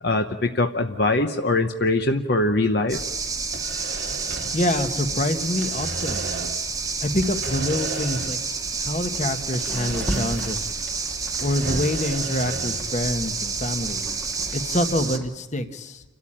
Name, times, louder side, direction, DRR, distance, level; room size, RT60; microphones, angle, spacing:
voice 1, 0.0-3.0, left 2 dB, 55° left, 6 dB, 0.9 m, -22 dB
sound 1, 2.9-15.2, right 4 dB, 15° right, 1.3 m, -29 dB
sound 2, 3.4-5.2 5.4-6.7 7.2-8.6 8.8-8.9 9.5-10.8 11.1-12.9, right 3 dB, 60° right, 1.6 m, -35 dB
voice 2, 4.5-6.3 7.0-8.4 8.7-10.9 11.4-14.0 14.5-16.0, left 1 dB, 35° left, 8 dB, 1.2 m, -26 dB
sound 3, 9.1-9.3 9.6-12.3 12.8-15.3, right 1 dB, 5° left, 1.4 m, -35 dB
29.0 x 13.0 x 8.9 m, 1.1 s
head